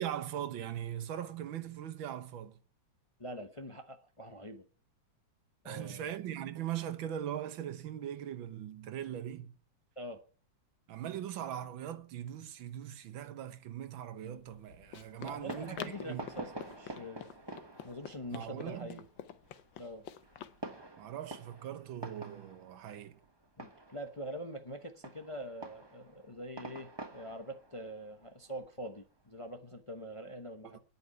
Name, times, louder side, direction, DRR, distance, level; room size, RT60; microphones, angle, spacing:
voice 1, 0.0-2.6 5.6-9.5 10.9-16.2 18.3-19.0 21.0-23.2 30.6-30.8, right 10 dB, 85° right, 1.8 m, -40 dB
voice 2, 3.2-4.7 5.6-6.1 10.0-10.2 15.2-17.3 17.8-19.0 19.8-20.1 23.6-30.8, equal, 25° left, 0.8 m, -44 dB
Run, 14.4-20.6, left 10 dB, 75° left, 1.5 m, -48 dB
Fireworks, 15.2-29.4, right 2 dB, 15° right, 1.1 m, -49 dB
9.7 x 8.8 x 9.5 m
omnidirectional pair, 2.1 m